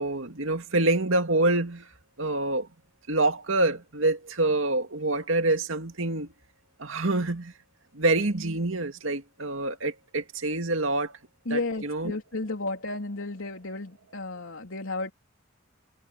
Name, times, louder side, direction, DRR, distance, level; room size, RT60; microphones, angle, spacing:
voice 1, 0.0-1.9 2.2-2.7 3.1-6.3 6.8-7.5 7.9-11.2 11.5-12.2, right 2 dB, 85° right, 2.3 m, -26 dB
voice 2, 11.5-15.1, left 2 dB, 85° left, 3.6 m, -33 dB
head